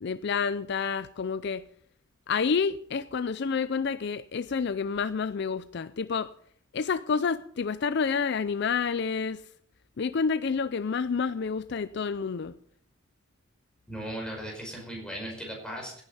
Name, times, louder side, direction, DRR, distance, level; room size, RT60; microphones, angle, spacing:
voice 1, 0.0-1.6 2.3-6.3 6.7-9.4 10.0-12.6, left 5 dB, 55° left, 0.4 m, -29 dB
voice 2, 13.9-16.0, equal, 5° left, 5.4 m, -37 dB
16.5 x 9.9 x 5.5 m
head